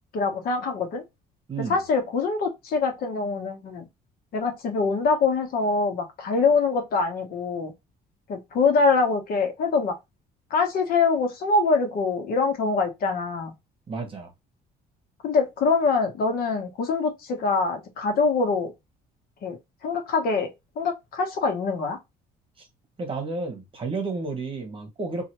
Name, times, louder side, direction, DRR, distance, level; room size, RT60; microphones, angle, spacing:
voice 1, 0.1-1.0 1.7-3.9 4.3-7.7 8.3-10.0 10.5-13.5 15.2-18.7 19.4-22.0, left 4 dB, 60° left, 1.0 m, -24 dB
voice 2, 1.5-1.8 13.9-14.3 22.6-22.7 23.0-25.3, right 3 dB, 30° right, 1.2 m, -31 dB
2.7 x 2.5 x 2.9 m
cardioid pair, 110°, 17 cm